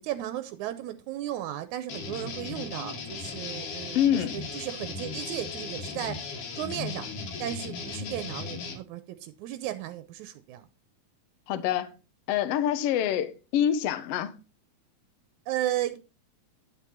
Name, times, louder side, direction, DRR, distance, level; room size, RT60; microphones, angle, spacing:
voice 1, 0.0-6.2 6.6-7.1 7.4-10.7 15.5-16.0, right 12 dB, 85° right, 2.0 m, -35 dB
sound 1, 1.9-8.7, left 4 dB, 85° left, 3.1 m, -37 dB
voice 2, 3.9-4.4 11.5-11.9 12.3-14.4, left 10 dB, 70° left, 1.6 m, -26 dB
10.0 x 6.0 x 4.3 m
omnidirectional pair, 3.5 m